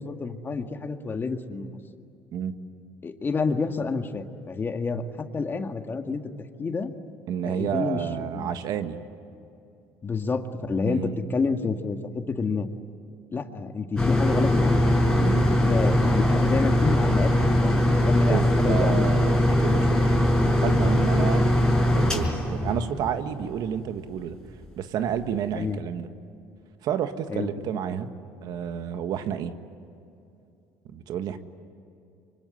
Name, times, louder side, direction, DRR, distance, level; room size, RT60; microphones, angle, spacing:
voice 1, 0.0-1.7 3.0-6.2 6.6-6.9 7.4-8.0 8.3-8.5 10.0-12.7 13.3-19.1 25.5-25.8 27.3-27.5, left 4 dB, 30° left, 6 dB, 1.9 m, -29 dB
voice 2, 7.3-9.0 10.8-11.2 15.2-15.6 18.2-21.4 21.8-24.4 24.8-26.1 26.8-28.1 28.4-29.5 30.8-31.4, right 9 dB, 65° right, 9 dB, 1.6 m, -30 dB
sound 1, 14.0-23.5 24.1-24.2 24.6-24.7, left 1 dB, 10° left, 5.5 m, -21 dB
25.0 x 24.5 x 9.7 m, 2.6 s
supercardioid pair, 90°, 7 cm